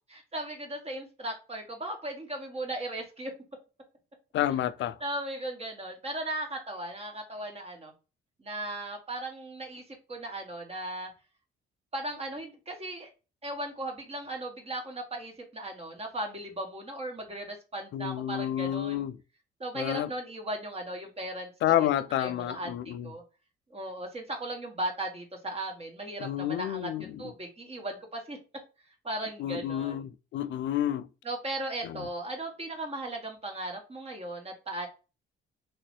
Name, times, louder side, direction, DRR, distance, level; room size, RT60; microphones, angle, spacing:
voice 1, 0.1-3.3 5.0-7.9 8.4-11.1 11.9-13.1 13.4-19.1 19.6-21.5 21.8-21.9 22.2-23.2 23.7-28.4 29.0-30.0 31.2-34.9, right 1 dB, 30° right, 1.3 m, -37 dB
voice 2, 4.3-5.0 17.9-19.2 19.7-20.1 21.6-23.1 26.2-27.1 29.4-31.1 31.8-32.1, left 12 dB, 70° left, 0.4 m, -29 dB
3.1 x 2.9 x 3.0 m
cardioid pair, 90°, 20 cm